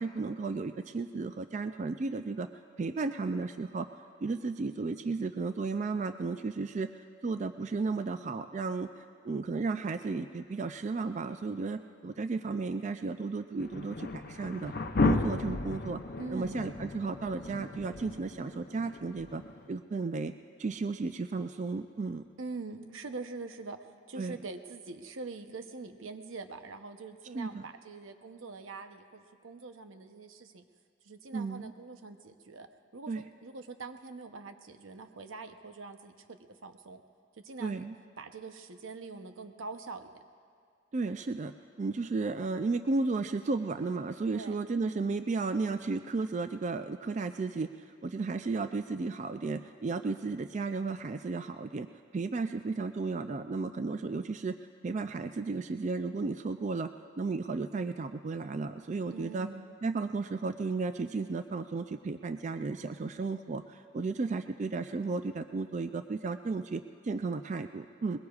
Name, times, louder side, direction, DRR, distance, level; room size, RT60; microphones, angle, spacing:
voice 1, 0.0-2.5 2.8-3.9 4.2-6.9 7.2-14.7 15.0-16.0 16.3-19.4 19.7-20.3 20.6-22.2 24.2-24.3 27.3-27.6 31.3-31.7 33.1-33.2 37.6-37.9 40.9-41.5 41.8-51.9 52.1-54.6 54.8-56.9 57.2-59.5 59.8-68.2, right 3 dB, 35° right, 9 dB, 0.3 m, -34 dB
sound 1, 13.6-19.7, left 3 dB, 50° left, 0.7 m, -34 dB
voice 2, 16.2-16.6 22.4-30.6 31.0-32.7 32.9-37.0 37.4-37.8 38.2-40.1 44.3-44.6 59.1-59.7, right 3 dB, 85° right, 7 dB, 0.8 m, -44 dB
21.5 x 21.5 x 2.4 m, 2.2 s
head